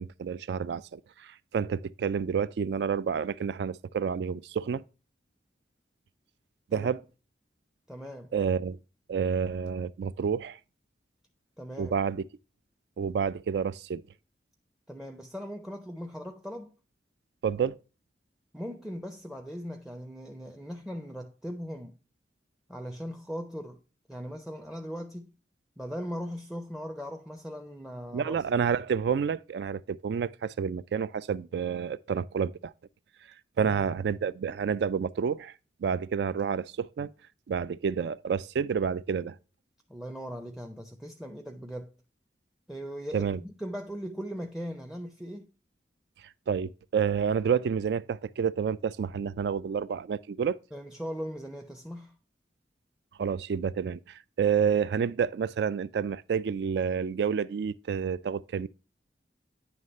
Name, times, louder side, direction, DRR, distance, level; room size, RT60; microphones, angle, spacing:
voice 1, 0.0-4.8 6.7-7.0 8.3-8.8 9.1-10.6 11.8-12.2 13.0-14.0 17.4-17.8 28.1-32.7 33.6-35.5 35.8-37.1 37.5-39.4 43.1-43.4 46.5-50.6 53.2-58.7, right 6 dB, 70° right, 0.3 m, -29 dB
voice 2, 7.9-8.3 11.6-11.9 14.9-16.7 18.5-21.9 22.7-23.8 24.1-25.3 25.8-28.4 33.6-33.9 39.9-41.9 42.7-45.5 50.7-52.1, equal, 5° right, 0.5 m, -39 dB
9.3 x 3.2 x 5.2 m
head